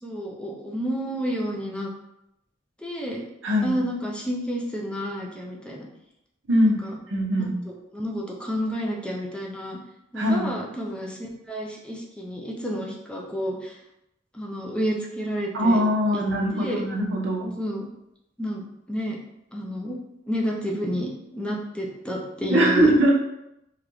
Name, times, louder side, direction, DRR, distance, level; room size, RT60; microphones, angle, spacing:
voice 1, 0.0-1.9 2.8-3.2 3.6-5.9 6.6-6.9 7.4-7.5 7.9-9.8 10.1-13.8 14.3-15.8 16.1-16.2 16.5-16.8 17.6-17.9 18.4-19.2 19.5-20.0 20.3-22.9, equal, 5° left, -2 dB, 0.5 m, -30 dB
voice 2, 3.4-3.7 6.5-6.8 7.1-7.5 10.1-10.5 15.5-17.5 22.5-23.1, equal, 90° right, -3 dB, 1.0 m, -21 dB
4.9 x 2.5 x 3.0 m, 0.84 s
head